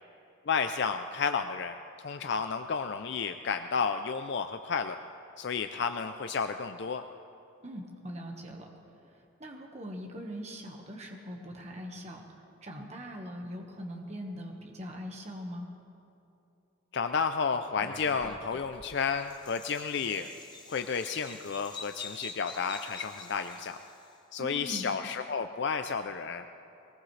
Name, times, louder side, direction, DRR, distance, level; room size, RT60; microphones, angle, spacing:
voice 1, 0.5-5.0 5.4-7.0 16.9-20.3 20.7-23.8 24.3-26.5, left 5 dB, 55° left, 8 dB, 0.4 m, -32 dB
voice 2, 7.6-8.7 9.0-12.2 12.6-15.7 24.4-24.9, equal, 30° right, 1 dB, 1.4 m, -41 dB
Bird vocalization bird call bird song, 17.8-24.0, left 3 dB, 20° left, 1.0 m, -47 dB
22.0 x 19.5 x 3.3 m, 2.8 s
head